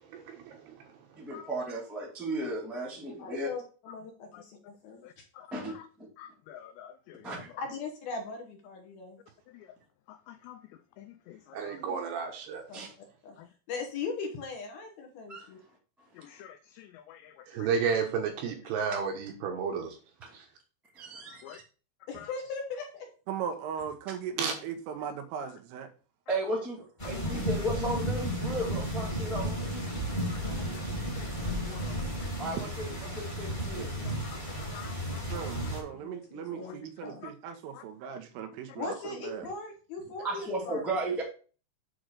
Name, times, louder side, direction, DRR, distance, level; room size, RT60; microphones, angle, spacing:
voice 1, 0.1-0.8 11.5-12.6 17.5-20.0 20.3-20.4 24.4-24.5, right 6 dB, 70° right, 2.7 m, -31 dB
voice 2, 1.2-3.5 5.5-5.7 7.2-7.4 12.7-12.9 15.3-15.5 20.2-20.3 20.9-21.6 26.3-29.9 32.4-33.9 40.2-41.2, right 1 dB, ahead, 0.4 m, -35 dB
voice 3, 3.2-5.2 7.6-9.2 12.7-12.8 13.2-13.4 13.7-15.6 22.1-23.1 36.0-37.2 38.7-40.8, left 4 dB, 65° left, 2.6 m, -39 dB
voice 4, 5.0-5.9 6.2-7.4 9.5-9.8 10.1-10.6 11.0-12.0 13.4-13.5 16.1-17.7 21.3-21.6 22.1-22.3 27.3-27.4 30.3-32.3 34.0-35.7 36.6-36.8 37.2-37.3 37.7-37.8, left 10 dB, 90° left, 2.5 m, -50 dB
voice 5, 23.3-25.9 35.3-39.4, right 8 dB, 90° right, 3.6 m, -38 dB
sound 1, 27.0-35.8, equal, 15° left, 1.5 m, -33 dB
8.7 x 3.9 x 6.5 m
omnidirectional pair, 5.5 m